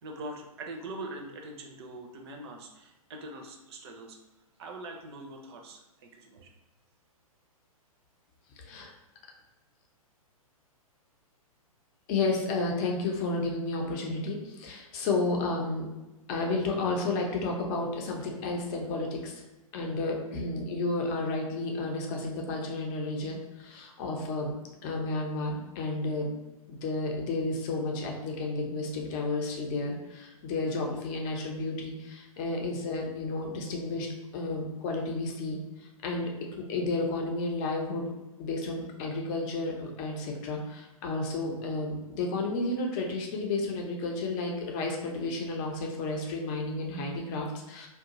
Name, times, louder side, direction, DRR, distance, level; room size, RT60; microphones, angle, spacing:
voice 1, 0.0-4.2 4.6-6.5, right 2 dB, 45° right, 2 dB, 0.6 m, -43 dB
voice 2, 8.6-8.9 12.1-15.9 16.3-19.4 19.7-24.5 24.8-26.4 26.7-34.1 34.3-36.3 36.7-38.0 38.4-47.9, left 2 dB, 30° left, 1 dB, 0.7 m, -32 dB
2.8 x 2.3 x 3.9 m, 1.0 s
figure-of-eight pair, 115°, 19 cm